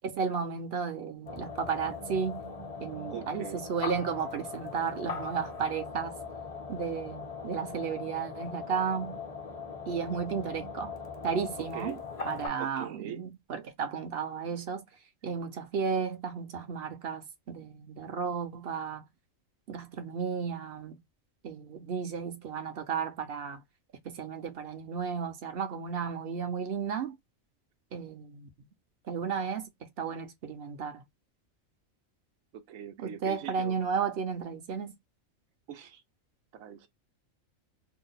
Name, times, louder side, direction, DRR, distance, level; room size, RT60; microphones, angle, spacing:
voice 1, 0.0-2.5 2.8-6.1 6.7-9.2 9.9-11.0 11.2-12.0 12.2-14.9 15.2-19.0 19.7-21.0 21.4-23.6 24.0-27.2 27.9-28.5 29.0-31.0 33.0-34.9, right 6 dB, 55° right, 0.8 m, -33 dB
sound 1, 1.3-12.5, left 4 dB, 40° left, 0.6 m, -40 dB
voice 2, 3.1-3.7 11.6-12.0 12.6-13.2 32.5-33.8 35.7-36.0 36.5-36.9, right 9 dB, 85° right, 1.1 m, -42 dB
2.7 x 2.1 x 3.9 m
omnidirectional pair, 1.4 m